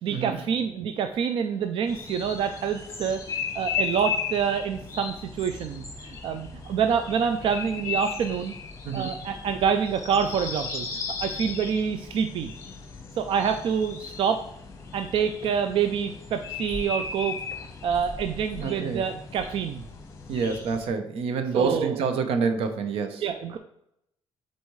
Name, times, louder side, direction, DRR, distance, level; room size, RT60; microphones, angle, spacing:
voice 1, 0.0-3.2 3.5-8.5 8.9-10.9 11.2-12.5 13.2-14.4 14.9-17.4 17.8-19.8 21.5-22.0 23.2-23.6, right 7 dB, 65° right, 7 dB, 0.4 m, -27 dB
sound 1, 1.9-20.9, left 5 dB, 35° left, 1.0 m, -36 dB
voice 2, 18.6-19.0 20.3-23.2, right 5 dB, 90° right, 8 dB, 0.8 m, -27 dB
8.0 x 4.1 x 3.2 m, 0.79 s
cardioid pair, 120°, 10 cm